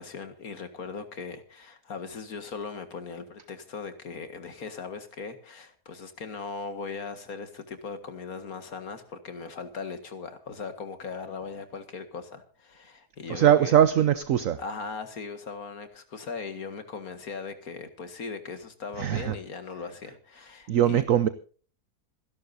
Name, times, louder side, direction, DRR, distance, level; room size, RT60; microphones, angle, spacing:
voice 1, 0.0-13.7 14.6-21.0, left 4 dB, 60° left, 2.2 m, -39 dB
voice 2, 13.3-14.6 19.0-19.4 20.7-21.3, right 10 dB, 60° right, 1.1 m, -21 dB
26.5 x 11.5 x 2.7 m
omnidirectional pair, 1.7 m